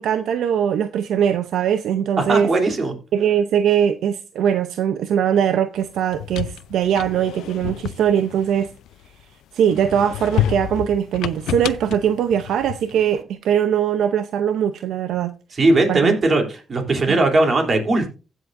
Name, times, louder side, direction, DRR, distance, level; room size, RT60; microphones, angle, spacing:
voice 1, 0.0-2.5 3.1-8.7 9.5-15.3 15.9-16.1 17.1-17.2, right 9 dB, 75° right, 0.7 m, -21 dB
voice 2, 2.2-2.9 15.5-18.1, right 2 dB, 40° right, 3.2 m, -19 dB
sound 1, 5.9-9.2 9.7-13.1, left 12 dB, 80° left, 0.5 m, -29 dB
16.0 x 7.4 x 2.6 m
cardioid pair, 90°, 0 cm